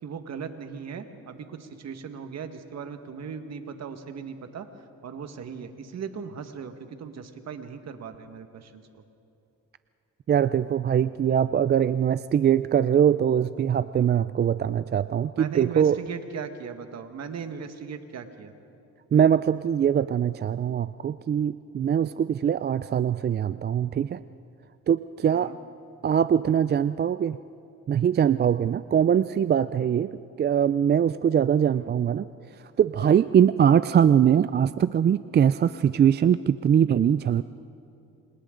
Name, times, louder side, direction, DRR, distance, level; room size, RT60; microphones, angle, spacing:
voice 1, 0.0-4.7 5.0-9.0 15.4-18.5 25.2-25.6 31.7-31.9, right 6 dB, 60° right, 7 dB, 1.7 m, -38 dB
voice 2, 10.3-16.0 19.1-24.2 24.9-25.5 26.0-27.4 27.9-32.3 32.8-37.4, right 9 dB, 35° right, 14 dB, 0.4 m, -22 dB
29.0 x 26.5 x 3.9 m, 2.7 s
cardioid pair, 90°, 30 cm